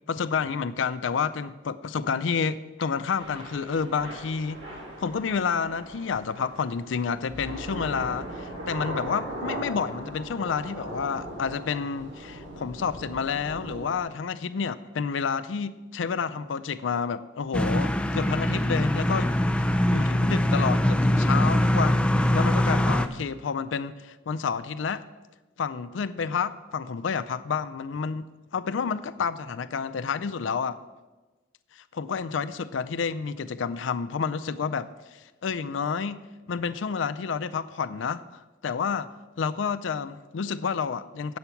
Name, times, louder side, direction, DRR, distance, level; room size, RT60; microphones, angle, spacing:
voice 1, 0.1-4.6 5.0-19.3 19.9-25.0 25.6-28.3 28.5-30.8 31.7-34.9 35.4-36.2 36.5-39.1 39.4-41.4, left 6 dB, 80° left, 13 dB, 0.4 m, -29 dB
Thunder / Rain, 3.2-14.0, right 1 dB, 80° right, 2.6 m, -39 dB
sound 1, 17.5-23.1, left 1 dB, 5° left, 0.3 m, -23 dB
8.3 x 7.8 x 5.8 m, 1.2 s
head